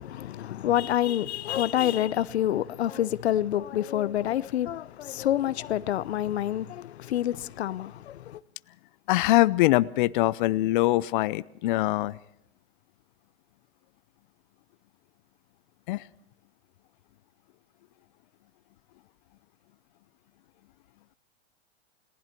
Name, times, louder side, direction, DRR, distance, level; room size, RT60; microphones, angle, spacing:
voice 1, 0.0-8.4, left 12 dB, 85° left, 0.8 m, -27 dB
voice 2, 9.1-12.2 15.9-16.0, left 17 dB, 50° left, 0.7 m, -23 dB
29.5 x 19.5 x 4.5 m
hypercardioid pair, 140°, 32 cm